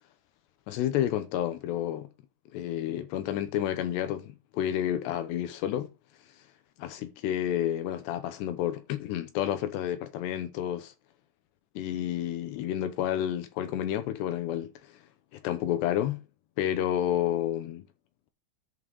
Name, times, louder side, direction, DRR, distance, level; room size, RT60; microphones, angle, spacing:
voice 1, 0.7-2.1 2.5-5.9 6.8-10.9 11.8-14.9 15.3-16.2 16.6-17.8, left 11 dB, 80° left, 2.7 m, -30 dB
11.0 x 5.7 x 3.9 m
omnidirectional pair, 5.6 m